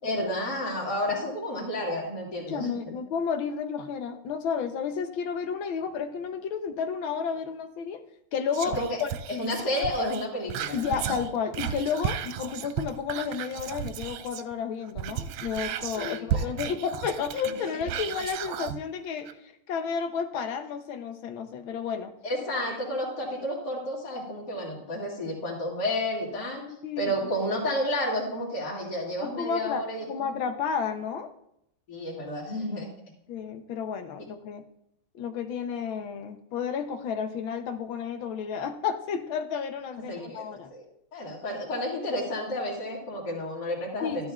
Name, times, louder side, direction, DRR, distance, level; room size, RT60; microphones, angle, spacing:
voice 1, 0.0-2.7 8.8-9.0 9.3-10.7 11.0-11.1 16.0-16.4 22.2-26.6 27.0-30.3 31.9-32.9 40.1-40.8 41.1-44.3, left 1 dB, 50° left, -5 dB, 2.7 m, -31 dB
voice 2, 2.5-8.0 8.3-9.1 10.7-19.4 19.7-22.1 26.7-27.2 29.2-31.3 33.3-34.6 35.1-40.7 41.5-41.7 44.0-44.3, left 6 dB, 70° left, 8 dB, 1.5 m, -32 dB
Whispering, 8.5-14.5 14.8-18.8 19.2-19.3, right 9 dB, 75° right, 1.3 m, -34 dB
13.0 x 11.5 x 2.4 m, 0.76 s
omnidirectional pair, 2.4 m